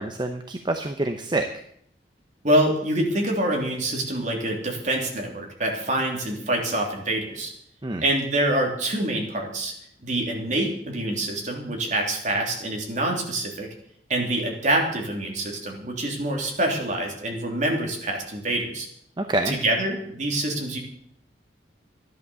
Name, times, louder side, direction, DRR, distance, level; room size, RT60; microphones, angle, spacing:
voice 1, 0.0-1.5 7.8-8.0 19.2-19.6, right 2 dB, 25° right, 6 dB, 0.8 m, -26 dB
voice 2, 2.4-7.5 8.0-9.7 10.0-13.7 14.1-18.9 19.4-20.8, right 1 dB, 45° right, 1 dB, 3.2 m, -26 dB
13.0 x 11.0 x 6.9 m, 0.68 s
head